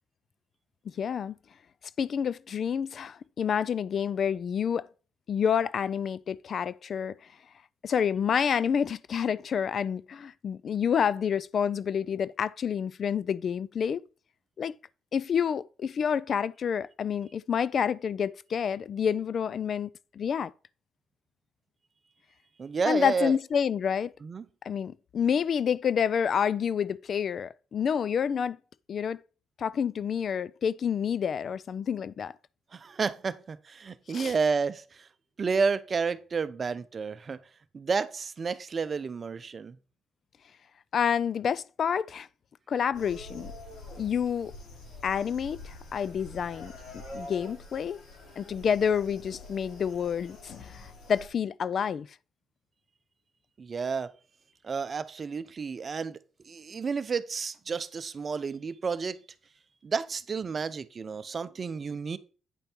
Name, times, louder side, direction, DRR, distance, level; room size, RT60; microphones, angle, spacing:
voice 1, 0.9-1.4 2.0-4.9 5.3-7.2 7.8-14.0 14.6-14.8 15.1-20.5 22.9-24.1 24.6-28.6 28.9-29.2 29.6-32.3 34.1-34.3 40.9-42.3 42.7-43.5 44.0-44.5 45.0-46.7 47.1-48.0 48.4-52.1, left 7 dB, 55° left, 0.3 m, -28 dB
voice 2, 22.6-23.4 24.2-24.4 32.7-35.1 35.4-37.4 37.7-39.8 53.6-54.1 54.6-59.2 59.8-62.2, right 5 dB, 40° right, 0.6 m, -31 dB
sound 1, 42.9-51.3, left 2 dB, 75° left, 3.4 m, -46 dB
9.2 x 5.2 x 4.4 m
cardioid pair, 105°, 0 cm